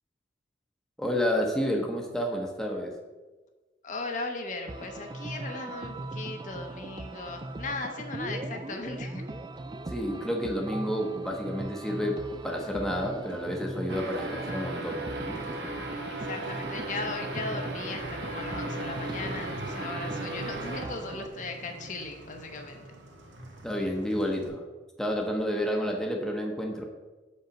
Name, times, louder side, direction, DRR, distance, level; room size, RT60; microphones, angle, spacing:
voice 1, 1.0-2.9 9.9-15.4 23.6-24.6 25.0-26.8, equal, ahead, -1 dB, 0.8 m, -30 dB
voice 2, 3.8-9.2 16.2-23.0, left 3 dB, 40° left, 4 dB, 0.8 m, -37 dB
sound 1, 4.7-21.3, right 2 dB, 25° right, 0.3 m, -39 dB
Motorcycle, 11.9-24.5, right 2 dB, 85° right, 1.5 m, -46 dB
sound 2, 13.9-20.8, right 2 dB, 60° right, 1.4 m, -37 dB
7.5 x 5.4 x 5.1 m, 1.3 s
head